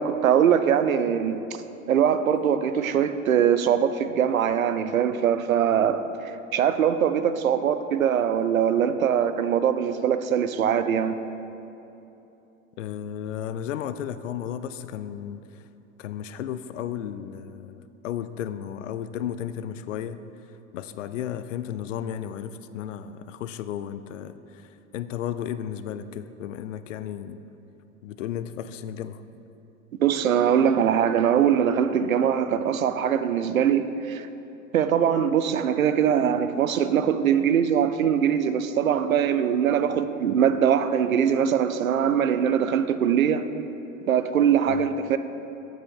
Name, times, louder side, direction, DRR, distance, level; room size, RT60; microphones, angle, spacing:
voice 1, 0.0-1.4 1.9-6.0 6.5-11.1 30.0-34.2 34.7-43.4 44.1-45.2, right 8 dB, 85° right, 11 dB, 0.5 m, -22 dB
voice 2, 12.8-15.4 16.0-20.2 20.7-27.4 28.0-29.2 44.7-44.9, left 10 dB, 70° left, 13 dB, 0.5 m, -34 dB
8.1 x 6.9 x 4.6 m, 2.9 s
figure-of-eight pair, 90°, 40 cm